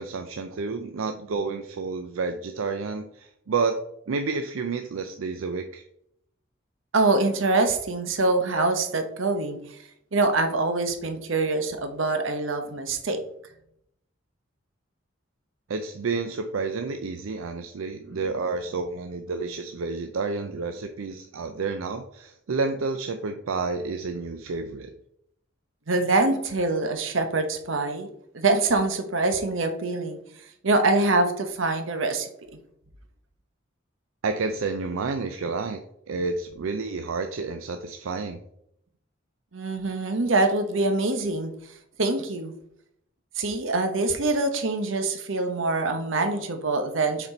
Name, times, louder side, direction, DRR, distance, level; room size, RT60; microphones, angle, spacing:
voice 1, 0.0-3.8 4.1-5.8 15.7-24.9 34.2-35.8 36.1-38.4, right 4 dB, 90° right, 7 dB, 0.5 m, -30 dB
voice 2, 6.9-9.6 10.1-13.2 18.1-18.2 25.9-28.1 28.3-30.2 30.6-32.3 39.5-41.5 42.0-42.5 43.4-47.3, right 3 dB, 75° right, 7 dB, 1.0 m, -24 dB
6.8 x 4.3 x 4.3 m, 0.75 s
head